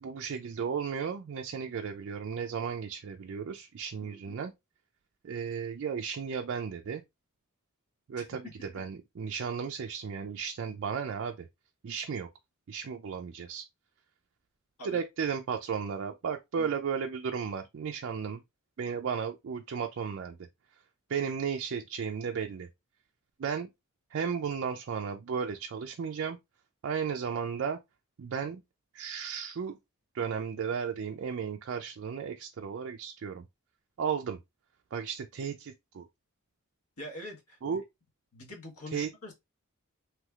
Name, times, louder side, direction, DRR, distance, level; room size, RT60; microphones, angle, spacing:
voice 1, 0.0-4.5 5.2-7.0 8.1-11.5 11.8-12.3 12.7-13.7 14.8-18.4 18.8-20.4 21.1-22.7 23.4-23.7 24.1-26.4 26.8-27.8 28.2-28.6 28.9-29.8 30.1-33.4 34.0-34.4 34.9-36.0 37.6-37.8 38.9-39.1, right 6 dB, 55° right, 0.4 m, -34 dB
voice 2, 4.0-4.4 8.2-8.3 14.8-15.0 16.6-16.8 37.0-37.8 38.3-39.3, left 1 dB, 85° left, 1.3 m, -45 dB
3.3 x 3.0 x 2.3 m
head